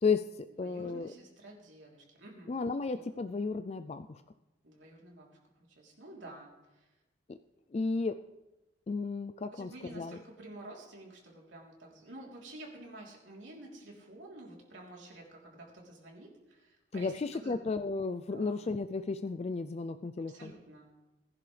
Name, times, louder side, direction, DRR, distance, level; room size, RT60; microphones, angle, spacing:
voice 1, 0.0-1.1 2.5-4.2 7.3-7.4 7.7-8.2 8.9-10.2 16.9-20.5, left 4 dB, 35° left, 10 dB, 0.3 m, -33 dB
voice 2, 0.6-2.6 2.9-3.2 4.6-5.4 5.7-6.9 9.5-17.6 18.3-18.6 20.3-20.9, right 1 dB, 80° right, -2 dB, 3.4 m, -50 dB
20.0 x 11.0 x 3.3 m, 1.0 s
head